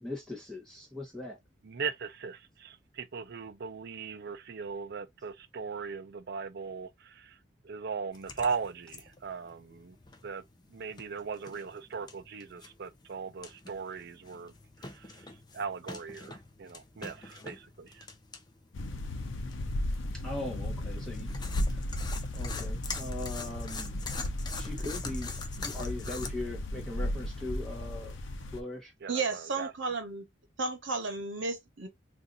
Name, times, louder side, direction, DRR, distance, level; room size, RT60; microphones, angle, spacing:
voice 1, 0.0-1.4 20.2-21.9 22.3-23.9 24.6-28.1 28.5-28.9, left 2 dB, 5° left, 1.0 m, -40 dB
voice 2, 1.6-7.4 7.6-10.0 10.2-10.4 10.7-14.5 14.8-15.2 15.5-18.0 29.0-29.7, right 5 dB, 55° right, 0.5 m, -38 dB
sound 1, 8.1-26.3, left 4 dB, 20° left, 0.5 m, -45 dB
sound 2, 18.7-28.6, left 1 dB, 90° left, 0.7 m, -35 dB
voice 3, 29.1-30.2 30.6-31.9, right 4 dB, 75° right, 1.0 m, -33 dB
2.6 x 2.6 x 3.9 m
head